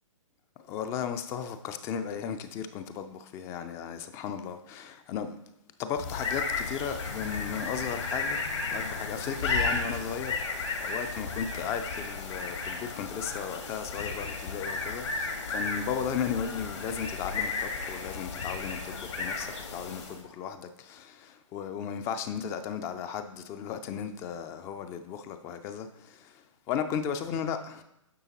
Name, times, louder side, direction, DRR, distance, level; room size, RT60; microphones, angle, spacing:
voice 1, 0.7-5.4 5.8-8.4 8.7-10.4 10.8-27.8, left 7 dB, 15° left, 0.4 m, -35 dB
sound 1, 6.0-20.3, left 4 dB, 60° left, 1.5 m, -34 dB
9.8 x 6.7 x 2.9 m
figure-of-eight pair, 125°, 17 cm